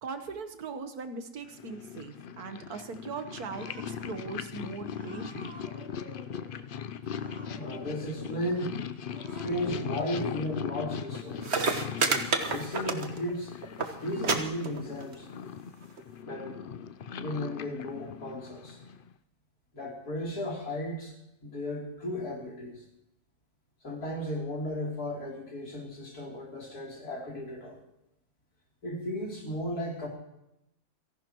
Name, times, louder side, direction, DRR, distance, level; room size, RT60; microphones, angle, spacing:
voice 1, 0.0-5.6, right 4 dB, 85° right, 7 dB, 1.8 m, -40 dB
Purr, 1.5-19.1, left 7 dB, 60° left, 0.5 m, -39 dB
Cat, 3.5-4.2 4.9-6.6 7.1-8.4 9.0-10.5, right 1 dB, 5° right, 3.7 m, -49 dB
voice 2, 7.5-8.8 9.3-11.6 12.5-13.5 14.0-15.3 16.2-16.6 17.2-18.8 19.7-21.1 21.4-22.8 23.8-27.8 28.8-30.1, left 1 dB, 85° left, -2 dB, 4.0 m, -35 dB
sound 1, 11.1-11.2 11.4-13.4 13.6-13.9 14.2-14.4 14.6-15.1 16.0-16.1, right 4 dB, 45° right, 1.5 m, -28 dB
29.0 x 11.5 x 3.0 m, 0.86 s
omnidirectional pair, 1.6 m